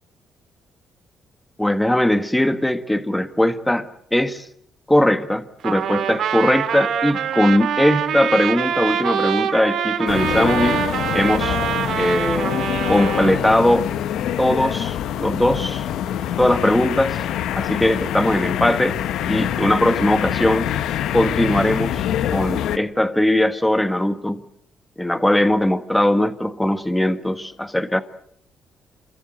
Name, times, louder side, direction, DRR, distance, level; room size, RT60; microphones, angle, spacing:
voice 1, 1.6-4.5 4.9-10.8 11.1-11.6 11.9-12.5 12.9-13.9 14.4-15.9 16.4-17.2 17.6-19.0 19.3-20.7 21.1-22.0 22.3-24.4 25.0-28.0, left 1 dB, 5° left, 1.6 m, -20 dB
Trumpet, 5.6-13.3, right 8 dB, 75° right, 2.7 m, -24 dB
sound 1, 10.1-22.8, left 10 dB, 80° left, 1.1 m, -25 dB
27.0 x 22.0 x 7.9 m
cardioid pair, 90°, 0 cm